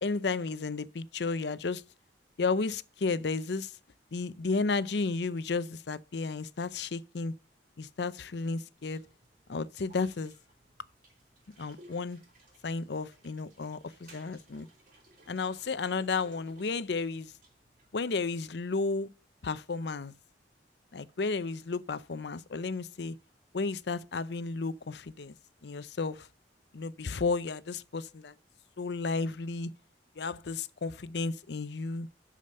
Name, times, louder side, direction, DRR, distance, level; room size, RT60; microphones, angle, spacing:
voice 1, 0.0-1.8 2.4-3.8 4.1-7.3 7.8-9.0 9.5-10.3 11.6-12.2 12.6-14.7 15.3-17.3 17.9-19.1 19.4-20.1 20.9-23.2 23.5-25.4 25.6-26.3 26.7-28.3 28.8-29.7 30.2-32.1, left 4 dB, 65° left, 0.6 m, -33 dB
sound 1, 8.8-18.0, right 1 dB, 50° right, 4.6 m, -60 dB
12.0 x 5.1 x 5.5 m
head